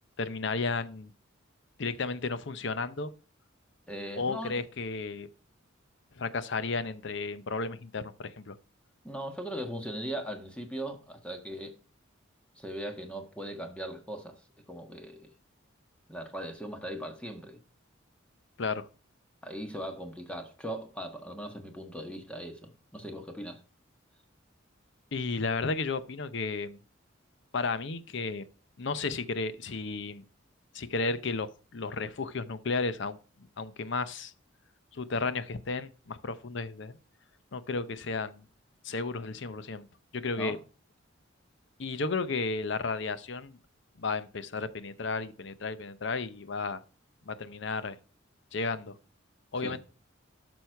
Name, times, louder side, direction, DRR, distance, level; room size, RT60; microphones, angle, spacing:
voice 1, 0.2-1.1 1.8-3.1 4.2-5.3 6.2-8.6 18.6-18.9 25.1-26.8 27.5-28.4 28.8-30.2 30.7-31.5 31.7-33.2 33.6-34.3 34.9-37.0 37.5-38.4 38.8-39.9 40.1-40.6 41.8-43.6 44.0-46.8 47.3-48.0 48.5-48.9 49.5-49.8, left 4 dB, 60° left, 0.7 m, -33 dB
voice 2, 3.9-4.5 9.0-11.7 12.6-14.4 14.7-15.3 16.1-17.6 19.4-23.6 40.4-40.6 49.5-49.8, equal, 5° left, 1.4 m, -39 dB
11.5 x 6.2 x 4.6 m
head